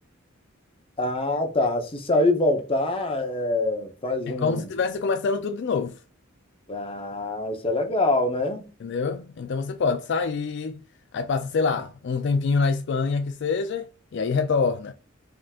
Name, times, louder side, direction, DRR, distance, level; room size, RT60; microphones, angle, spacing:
voice 1, 1.0-4.7 6.7-8.7, left 2 dB, 25° left, 0.8 m, -25 dB
voice 2, 4.3-6.0 8.8-10.8 11.1-14.9, left 4 dB, 55° left, 0.4 m, -26 dB
5.1 x 3.6 x 2.4 m
head